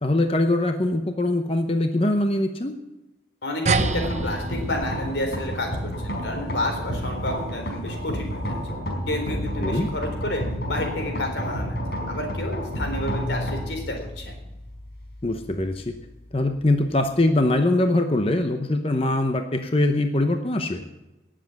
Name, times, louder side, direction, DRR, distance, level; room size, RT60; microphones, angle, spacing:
voice 1, 0.0-2.7 9.6-9.9 15.2-15.9 16.3-20.8, left 1 dB, 30° left, 6 dB, 0.8 m, -22 dB
voice 2, 3.4-8.4 9.1-14.4, left 1 dB, 85° left, 3 dB, 3.9 m, -30 dB
sound 1, 3.6-17.5, equal, 60° left, 4.9 m, -31 dB
sound 2, 3.7-8.5, right 4 dB, 40° right, 0.7 m, -31 dB
18.5 x 7.6 x 7.1 m, 1.0 s
head